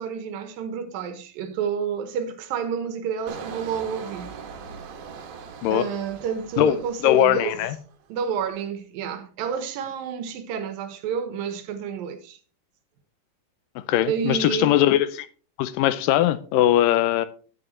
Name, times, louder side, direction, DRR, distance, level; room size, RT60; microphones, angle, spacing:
voice 1, 0.0-4.3 5.7-7.6 8.1-12.4 14.1-14.7, right 7 dB, 85° right, 2.8 m, -30 dB
Engine, 3.3-7.9 8.3-8.6, right 6 dB, 70° right, 2.6 m, -41 dB
voice 2, 6.6-7.8 13.8-15.3 15.6-17.3, left 12 dB, 80° left, 2.2 m, -20 dB
10.0 x 9.5 x 3.1 m
omnidirectional pair, 4.0 m